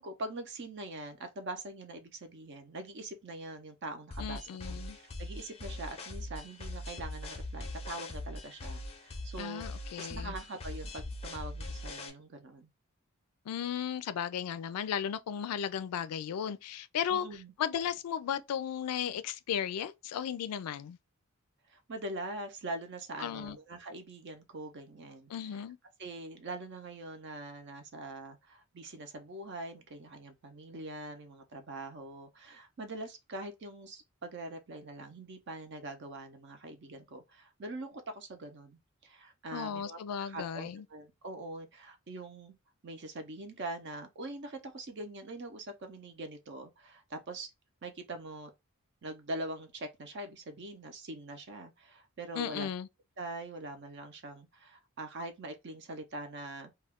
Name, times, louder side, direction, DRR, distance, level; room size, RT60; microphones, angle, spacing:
voice 1, 0.0-9.6 10.0-12.7 17.1-17.5 21.7-25.3 26.0-42.6 42.8-47.5 47.8-48.5 49.0-52.7 53.2-56.7, right 2 dB, 50° right, 0.6 m, -43 dB
sound 1, 4.1-12.1, left 1 dB, 25° left, 0.5 m, -41 dB
voice 2, 4.2-5.0 9.4-10.3 13.5-17.3 17.6-21.0 23.2-23.6 25.3-25.8 39.5-40.8 52.3-52.9, left 8 dB, 90° left, 0.3 m, -35 dB
2.3 x 2.3 x 3.4 m
head